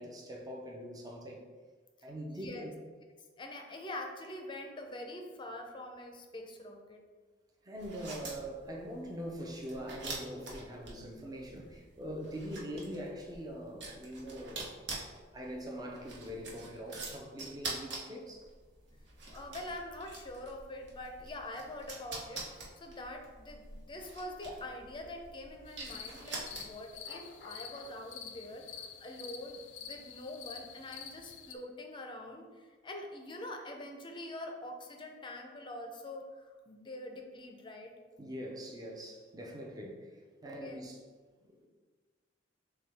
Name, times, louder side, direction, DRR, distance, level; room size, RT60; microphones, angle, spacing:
voice 1, 0.0-1.5 2.0-2.7 7.6-14.8 15.3-18.5 38.2-40.2 40.4-41.0 41.4-41.7, equal, 20° right, 0 dB, 0.6 m, -43 dB
voice 2, 2.3-2.7 3.4-7.0 19.3-37.9 40.6-40.9, left 1 dB, 25° left, 3 dB, 0.5 m, -45 dB
sound 1, 7.8-27.0, right 3 dB, 65° right, 1.0 m, -46 dB
sound 2, 25.7-31.6, left 7 dB, 85° left, 0.4 m, -48 dB
6.7 x 2.3 x 3.4 m, 1.4 s
head